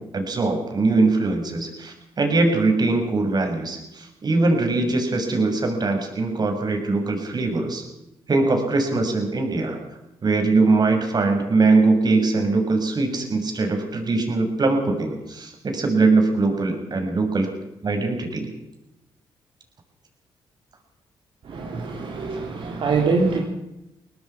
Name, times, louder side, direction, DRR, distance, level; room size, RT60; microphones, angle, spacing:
voice 1, 0.0-7.8 8.3-9.8 10.2-17.5 17.8-18.5, right 3 dB, 45° right, 4 dB, 6.9 m, -21 dB
voice 2, 21.5-23.4, right 4 dB, 60° right, -1 dB, 3.9 m, -24 dB
23.5 x 18.5 x 6.0 m, 0.90 s
supercardioid pair, 65°, 10 cm